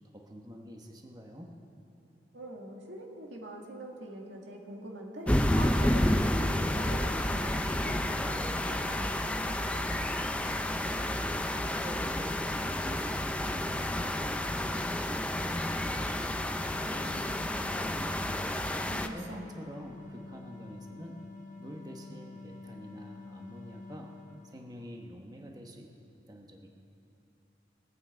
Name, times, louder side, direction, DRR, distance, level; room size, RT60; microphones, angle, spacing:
voice 1, 0.1-1.5 10.7-11.2 11.6-16.3 16.6-18.4 19.1-21.2 21.6-24.1 24.4-25.9 26.3-26.7, equal, 20° right, 1 dB, 1.0 m, -46 dB
voice 2, 2.3-9.9 18.9-19.5, right 1 dB, 90° right, 0 dB, 2.0 m, -44 dB
sound 1, 5.3-19.1, left 1 dB, 5° left, 0.4 m, -30 dB
sound 2, 17.0-25.1, left 3 dB, 45° left, 0.7 m, -48 dB
22.5 x 8.5 x 4.4 m, 3.0 s
head